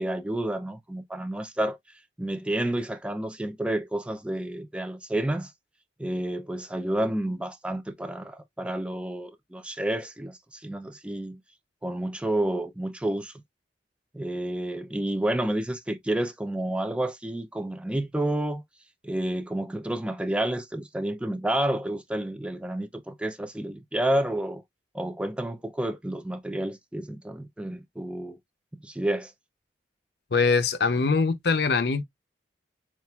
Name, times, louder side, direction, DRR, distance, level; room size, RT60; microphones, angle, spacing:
voice 1, 0.0-1.8 2.2-5.5 6.0-11.4 11.8-13.3 14.1-18.6 19.0-24.6 24.9-28.4 28.8-29.3, right 1 dB, 5° right, 0.4 m, -30 dB
voice 2, 30.3-32.0, left 4 dB, 60° left, 0.6 m, -23 dB
7.0 x 2.4 x 2.3 m
head